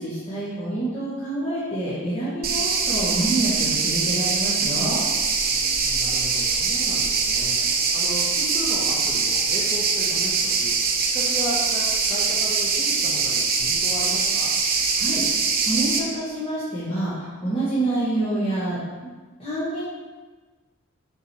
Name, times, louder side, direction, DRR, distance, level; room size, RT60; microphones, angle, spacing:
voice 1, 0.0-5.0 14.7-15.2 15.7-18.8 19.4-19.8, right 2 dB, 25° left, -11 dB, 2.0 m, -27 dB
sound 1, 2.4-16.0, right 5 dB, 45° right, 0.9 m, -23 dB
voice 2, 5.5-14.5, equal, 5° left, -9 dB, 1.4 m, -35 dB
6.8 x 4.6 x 6.4 m, 1.3 s
head